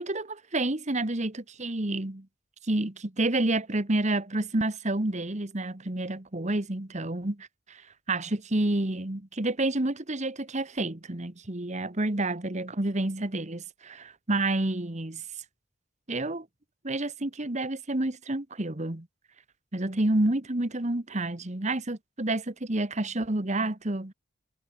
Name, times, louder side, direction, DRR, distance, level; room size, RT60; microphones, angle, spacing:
voice 1, 0.0-2.3 2.7-7.8 8.1-15.2 16.1-16.5 16.8-19.1 19.7-24.1, right 2 dB, 35° right, 1.5 m, -29 dB
head